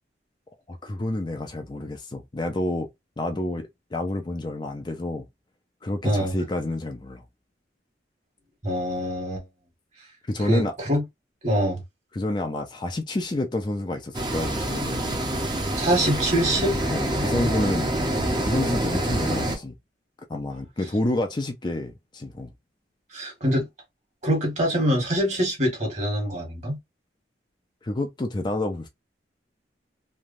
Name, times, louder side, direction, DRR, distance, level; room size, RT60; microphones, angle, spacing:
voice 1, 0.7-2.9 3.2-5.2 5.8-7.2 10.3-10.7 12.1-15.2 16.9-17.9 18.4-19.7 20.3-22.5 27.8-28.9, left 1 dB, 25° left, 0.4 m, -29 dB
voice 2, 6.0-6.3 8.6-9.4 10.4-11.0 11.4-11.8 15.8-16.8 23.1-23.7 24.2-26.8, equal, 40° right, 1.5 m, -24 dB
sound 1, 14.1-19.6, right 1 dB, 25° right, 0.7 m, -26 dB
3.1 x 2.2 x 2.5 m
head